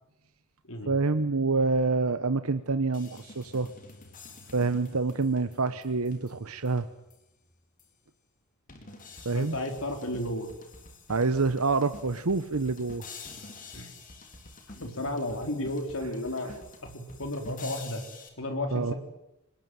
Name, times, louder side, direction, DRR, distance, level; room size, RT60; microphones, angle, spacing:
voice 1, 0.9-3.7 4.5-6.9 9.2-9.6 11.1-13.1 16.5-16.6 18.7-18.9, right 3 dB, 75° right, 11 dB, 1.0 m, -27 dB
sound 1, 2.9-7.4 7.8-7.9 8.7-18.3, left 3 dB, 35° left, 4.1 m, -48 dB
voice 2, 9.3-10.5 13.7-13.9 14.7-16.5 16.8-18.0 18.4-18.9, left 1 dB, 60° left, 5 dB, 4.1 m, -33 dB
26.5 x 20.0 x 9.3 m, 0.87 s
head